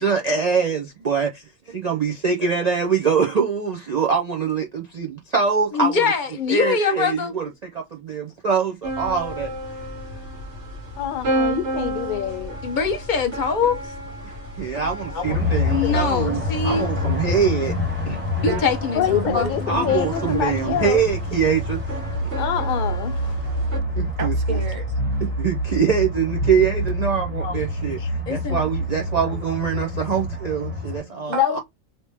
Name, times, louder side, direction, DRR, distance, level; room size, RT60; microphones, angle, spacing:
voice 1, 0.0-6.0 6.5-9.5 14.6-17.7 18.1-18.2 19.7-22.0 24.0-24.3 25.4-31.6, right 6 dB, 75° right, 0.3 m, -24 dB
voice 2, 5.7-7.3 12.6-13.8 15.1-15.4 15.7-17.1 18.4-20.4 27.4-27.6 28.0-28.7 29.7-29.8 30.7-31.3, left 5 dB, 45° left, 0.7 m, -24 dB
sound 1, 8.8-23.8, right 1 dB, 60° right, 1.5 m, -32 dB
voice 3, 11.0-12.6 18.9-21.0 22.4-23.1 31.3-31.6, left 11 dB, 80° left, 0.4 m, -25 dB
sound 2, 15.2-31.0, left 1 dB, 10° right, 0.9 m, -27 dB
voice 4, 18.0-18.6 19.1-19.5 22.0-22.3 23.4-24.9 31.3-31.6, right 4 dB, 40° right, 1.0 m, -33 dB
2.9 x 2.8 x 3.3 m
omnidirectional pair, 1.4 m